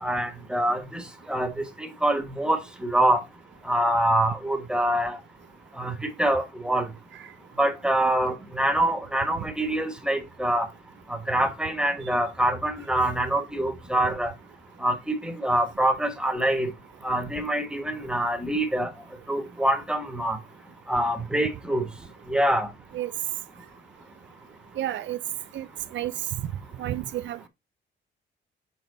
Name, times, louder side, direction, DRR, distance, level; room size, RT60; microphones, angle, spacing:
voice 1, 0.0-1.0 1.3-3.2 3.6-5.2 5.8-6.9 7.6-10.7 11.3-14.3 14.8-16.7 17.0-18.9 19.3-20.4 20.9-21.8 22.3-22.7, right 1 dB, 5° right, 1.5 m, -25 dB
voice 2, 24.8-25.2 25.5-25.7 25.9-26.1 26.8-27.5, right 13 dB, 70° right, 0.7 m, -31 dB
7.0 x 3.8 x 4.0 m
cardioid pair, 90°, 20 cm